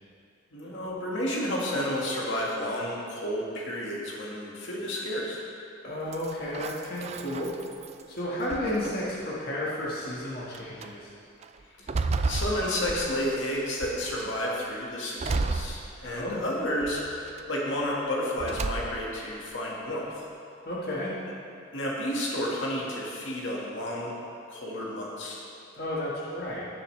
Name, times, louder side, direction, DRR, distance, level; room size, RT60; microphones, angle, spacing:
voice 1, 0.5-5.4 11.8-20.3 21.7-24.1 24.5-25.4, left 1 dB, 70° left, -4 dB, 1.7 m, -31 dB
voice 2, 5.8-7.5 8.1-11.1 16.0-16.4 20.6-21.1 25.8-26.7, left 1 dB, 50° left, -7 dB, 1.6 m, -32 dB
sound 1, 6.1-8.0 8.5-9.2 10.0-10.1 10.5-10.9 11.4-13.4 13.8-14.3 15.2-16.4 16.8-17.4 18.4-19.2, right 3 dB, 35° right, 0.4 m, -33 dB
16.5 x 7.0 x 3.2 m, 2.5 s
head